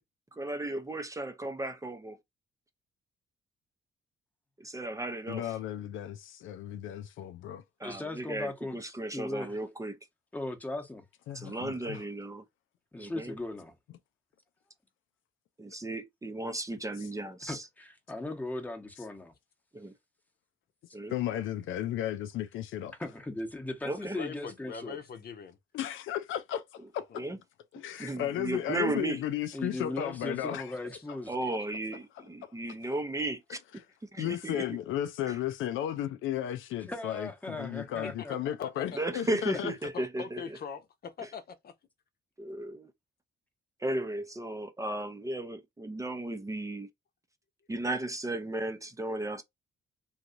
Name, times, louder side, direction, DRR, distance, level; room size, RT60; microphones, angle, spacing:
voice 1, 0.3-2.2 4.6-5.5 7.8-10.0 11.3-12.4 13.0-13.3 15.6-17.6 19.7-19.9 20.9-21.2 23.8-24.2 27.1-27.4 28.0-29.2 31.3-33.6 34.0-34.8 35.3-35.4 38.9-40.6 41.2-41.3 42.4-42.9 43.8-46.9 47.7-49.4, right 2 dB, 15° right, 0.6 m, -35 dB
voice 2, 5.3-7.6 11.3-12.0 21.1-22.9 25.7-27.2 27.7-30.6 34.2-39.7, left 11 dB, 80° left, 0.5 m, -34 dB
voice 3, 7.8-9.6 10.3-11.1 11.4-11.5 12.9-13.7 17.5-19.3 23.0-25.0 29.5-31.3 36.9-38.4 39.5-39.6, left 2 dB, 10° left, 0.9 m, -38 dB
voice 4, 24.1-25.6 38.0-39.0 39.9-41.7, left 6 dB, 50° left, 0.8 m, -42 dB
3.0 x 2.7 x 2.5 m
cardioid pair, 90°, 20 cm